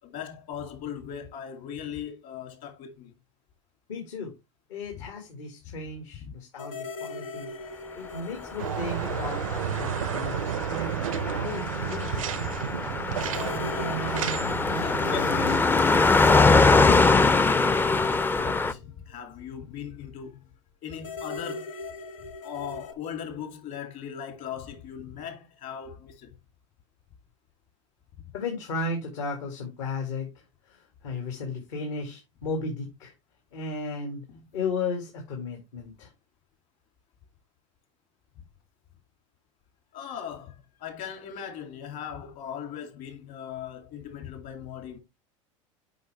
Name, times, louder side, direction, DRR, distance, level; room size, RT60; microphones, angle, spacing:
voice 1, 0.0-3.1 5.0-5.1 5.7-5.8 6.2-6.3 9.1-9.2 11.2-11.3 14.7-20.4 20.8-21.8 22.4-26.4 34.3-34.4 39.9-45.0, left 8 dB, 55° left, 2.6 m, -39 dB
voice 2, 3.9-4.3 4.7-12.6 28.3-33.1 33.5-34.2 34.5-36.1, left 3 dB, 70° left, 2.2 m, -35 dB
sound 1, 6.6-10.3 10.6-10.7 13.2-18.6 20.9-22.9, left 5 dB, 90° left, 1.0 m, -39 dB
sound 2, 8.6-15.6, right 10 dB, 80° right, 0.6 m, -32 dB
Car passing by, 8.8-18.7, left 3 dB, 10° left, 0.5 m, -23 dB
7.9 x 5.5 x 3.3 m
hypercardioid pair, 85°, 17 cm